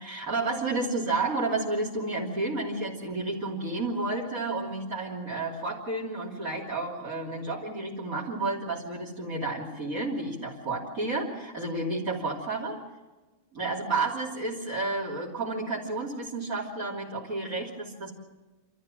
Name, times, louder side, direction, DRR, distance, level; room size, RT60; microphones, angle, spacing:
voice 1, 0.0-12.8 13.5-18.2, right 3 dB, 80° right, -6 dB, 3.6 m, -31 dB
27.5 x 13.5 x 7.5 m, 1.2 s
omnidirectional pair, 1.5 m